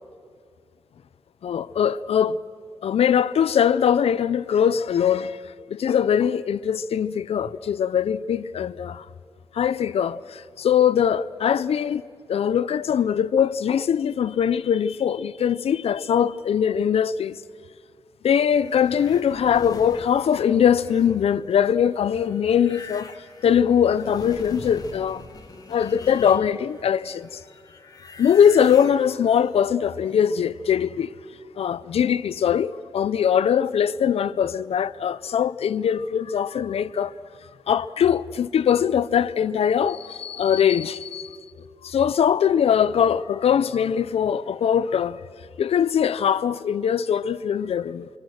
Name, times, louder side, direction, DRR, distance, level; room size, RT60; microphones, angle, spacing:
voice 1, 1.4-2.4 2.8-5.4 5.7-9.0 9.5-12.0 12.3-17.4 18.2-23.1 23.4-25.3 25.7-27.4 28.2-31.1 31.6-37.1 37.7-41.4 41.8-45.2 45.6-48.1, left 8 dB, 80° left, 0.6 m, -21 dB
sound 1, 18.6-26.8 27.1-30.4, left 4 dB, 40° left, 1.4 m, -44 dB
25.5 x 25.0 x 6.4 m
wide cardioid pair, 160°, 10 cm